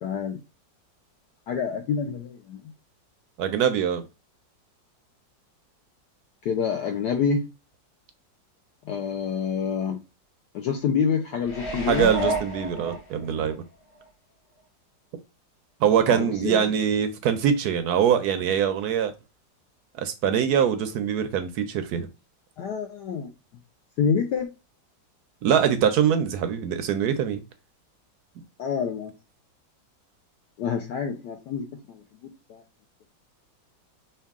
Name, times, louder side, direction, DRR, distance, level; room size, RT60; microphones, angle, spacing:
voice 1, 0.0-0.4 1.5-2.6 6.4-7.4 8.9-10.0 10.5-12.1 16.1-16.7 22.6-23.3 24.0-24.5 28.6-29.1 30.6-32.0 32.5-32.6, left 6 dB, 70° left, 1.1 m, -27 dB
voice 2, 3.4-4.0 11.9-13.6 15.8-19.1 20.0-22.1 25.4-27.4, right 8 dB, 70° right, 0.9 m, -23 dB
sound 1, 11.4-13.5 14.0-14.1, equal, 50° left, 2.5 m, -30 dB
5.5 x 2.3 x 3.5 m
omnidirectional pair, 2.0 m